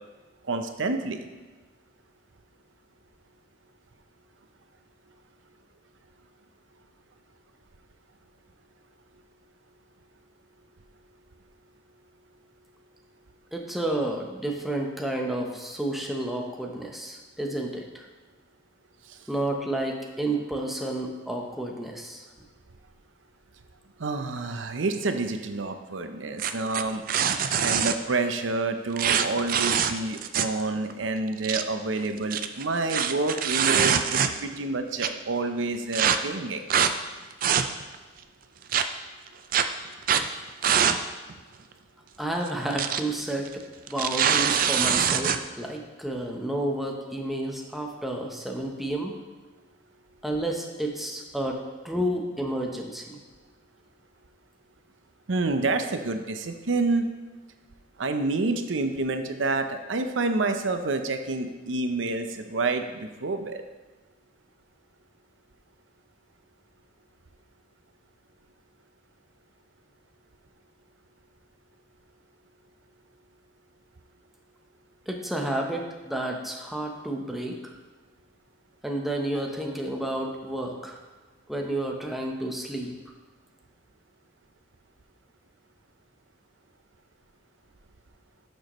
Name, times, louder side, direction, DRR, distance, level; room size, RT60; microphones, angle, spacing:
voice 1, 0.5-1.2 19.1-19.2 24.0-27.0 27.6-36.6 55.3-57.1 58.0-63.6, right 3 dB, 85° right, 7 dB, 0.7 m, -28 dB
voice 2, 13.5-18.0 19.3-22.2 42.2-49.1 50.2-53.2 75.1-77.6 78.8-81.0 81.5-82.9, right 1 dB, ahead, 0 dB, 0.9 m, -31 dB
sound 1, 26.4-28.0 29.0-30.6 30.9-31.0 31.3-31.6 32.2-34.6 35.0-35.1 35.9-36.2 36.7-36.9 37.3-38.0 38.7-38.8 39.5-39.6 40.0-40.3 40.6-41.0 41.3-41.4 42.5-43.0 43.3-43.5 43.9-45.4, right 8 dB, 50° right, 0.4 m, -24 dB
11.5 x 6.4 x 3.1 m, 1.3 s
head